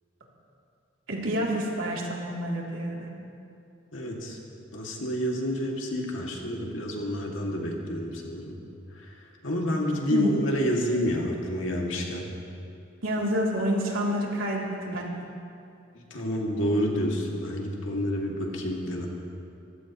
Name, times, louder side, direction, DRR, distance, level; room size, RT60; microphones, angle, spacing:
voice 1, 1.1-3.1 10.1-10.3 13.0-15.0, equal, 80° right, -3 dB, 3.1 m, -28 dB
voice 2, 3.9-4.4 4.7-8.6 8.9-9.2 9.4-12.3 15.9-19.1, equal, 70° left, -1 dB, 2.4 m, -29 dB
25.0 x 16.0 x 3.1 m, 2.6 s
head